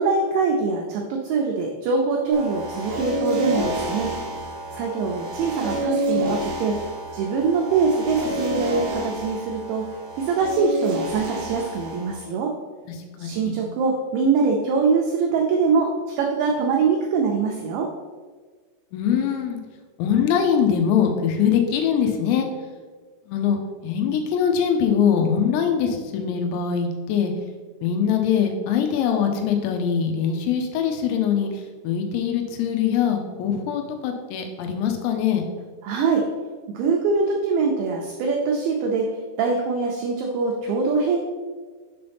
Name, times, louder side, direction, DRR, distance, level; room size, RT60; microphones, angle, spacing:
voice 1, 0.0-4.1 4.7-6.8 7.1-9.9 10.2-12.5 13.2-15.9 16.2-17.9 35.8-36.3 36.7-41.2, right 4 dB, 90° right, 0 dB, 2.5 m, -23 dB
sound 1, 2.3-12.1, right 1 dB, 55° right, 2.9 m, -29 dB
voice 2, 13.2-13.6 18.9-19.6 20.0-22.5 23.3-27.3 27.8-31.5 31.8-35.5, left 7 dB, 85° left, 4 dB, 3.5 m, -22 dB
7.8 x 5.4 x 3.4 m, 1.5 s
omnidirectional pair, 5.9 m